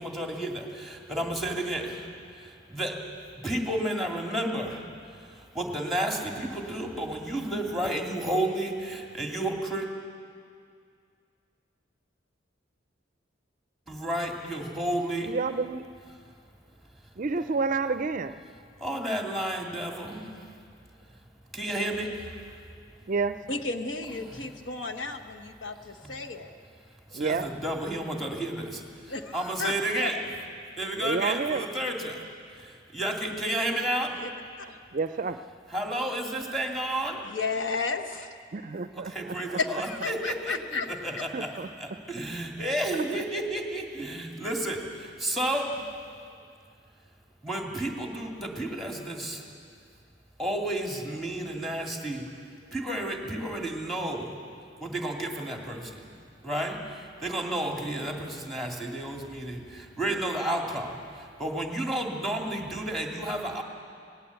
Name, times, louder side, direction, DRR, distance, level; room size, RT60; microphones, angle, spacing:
voice 1, 0.0-2.0 2.7-2.9 3.4-4.8 5.5-9.9 13.9-15.3 18.8-20.3 21.5-22.1 24.1-24.5 26.0-26.2 27.1-28.8 29.3-30.2 30.8-32.2 32.9-34.1 35.7-37.2 39.1-45.7 47.4-49.4 50.4-52.2 52.7-54.4 54.8-56.0 56.4-56.8 57.2-60.9 61.4-63.6, right 1 dB, ahead, 1 dB, 2.2 m, -31 dB
voice 2, 15.2-15.8 17.2-18.4 23.1-23.4 27.1-27.5 30.9-31.6 34.9-35.4 38.5-39.1 39.5-39.6 41.3-41.7 42.9-43.0 60.1-60.2, right 4 dB, 45° right, 12 dB, 0.4 m, -29 dB
voice 3, 23.5-26.5 29.1-29.7 30.0-30.1 34.2-34.3 34.6-34.8 37.2-38.3 39.6-40.9, left 4 dB, 75° left, 7 dB, 1.2 m, -33 dB
18.5 x 18.0 x 8.2 m, 2.3 s
head